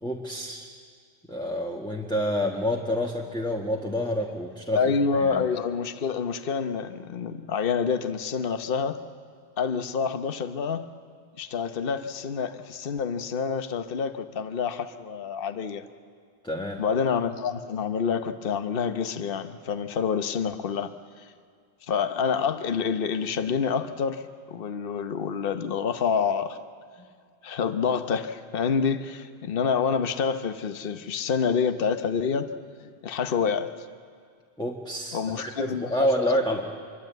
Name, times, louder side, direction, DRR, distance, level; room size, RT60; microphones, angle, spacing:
voice 1, 0.0-0.7 1.3-5.4 16.4-16.8 34.6-36.6, equal, 5° left, 1 dB, 1.6 m, -28 dB
voice 2, 4.7-9.0 9.6-10.9 11.4-15.9 16.8-20.9 21.2-21.3 21.9-26.6 27.4-32.5 32.8-33.7 35.1-36.4, left 6 dB, 55° left, 10 dB, 1.1 m, -27 dB
25.5 x 23.0 x 9.2 m, 2.2 s
omnidirectional pair, 1.1 m